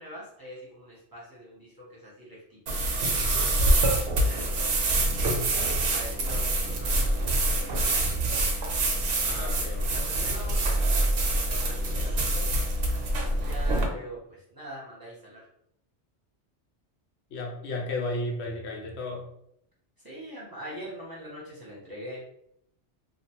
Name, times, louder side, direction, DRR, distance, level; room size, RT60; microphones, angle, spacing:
voice 1, 0.0-2.6 4.2-4.9 5.1-5.4 5.9-7.9 8.2-8.5 9.2-12.6 13.4-15.4 20.0-22.2, equal, 20° right, -7 dB, 0.8 m, -43 dB
sound 1, 2.7-13.9, right 1 dB, 70° right, 0.8 m, -25 dB
voice 2, 3.2-3.5 9.2-10.0 17.3-19.3, left 2 dB, 75° left, 1 dB, 0.8 m, -34 dB
2.5 x 2.2 x 2.9 m, 0.74 s
omnidirectional pair, 1.2 m